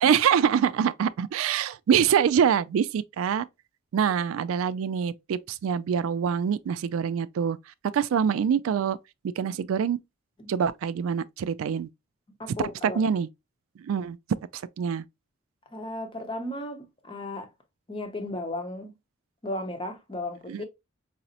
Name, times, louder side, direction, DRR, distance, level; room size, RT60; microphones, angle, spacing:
voice 1, 0.0-3.4 3.9-7.6 7.9-9.0 9.4-10.0 10.5-11.9 12.8-13.3 13.8-14.2 14.5-15.0 20.5-20.6, right 7 dB, 85° right, 0.3 m, -25 dB
voice 2, 12.4-13.0 15.7-17.5 17.9-18.9 19.4-20.6, left 1 dB, 25° left, 0.7 m, -35 dB
4.8 x 2.0 x 2.8 m
head